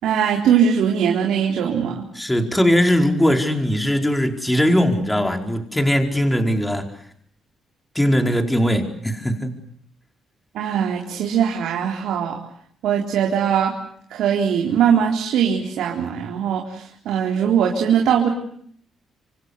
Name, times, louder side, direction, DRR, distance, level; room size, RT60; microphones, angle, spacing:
voice 1, 0.0-2.0 10.5-12.4 12.8-13.7 14.1-18.3, right 8 dB, 80° right, 1 dB, 3.9 m, -20 dB
voice 2, 2.1-6.9 7.9-9.6, equal, 10° left, 4 dB, 4.7 m, -20 dB
27.0 x 25.5 x 8.2 m, 0.65 s
cardioid pair, 90°, 0 cm